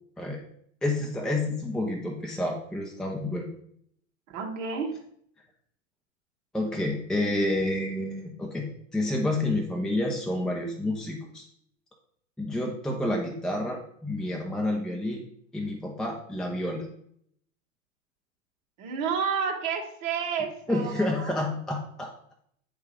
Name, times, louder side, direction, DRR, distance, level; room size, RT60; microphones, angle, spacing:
voice 1, 0.8-3.5 6.5-11.5 12.4-15.2 15.5-16.9 20.7-22.1, left 1 dB, ahead, 0 dB, 0.7 m, -29 dB
voice 2, 4.3-4.9 18.8-21.3, right 6 dB, 45° right, 2 dB, 1.7 m, -30 dB
9.6 x 3.6 x 5.0 m, 0.67 s
hypercardioid pair, 130°, 39 cm